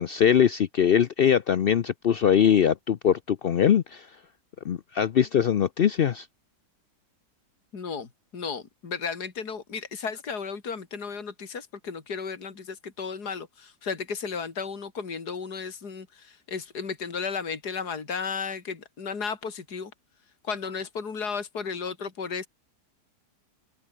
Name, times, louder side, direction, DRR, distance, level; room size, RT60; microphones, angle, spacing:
voice 1, 0.0-4.1 4.6-6.3, left 9 dB, 85° left, 0.5 m, -22 dB
voice 2, 7.7-19.9 20.4-22.5, left 5 dB, 70° left, 3.2 m, -34 dB
omnidirectional pair, 1.8 m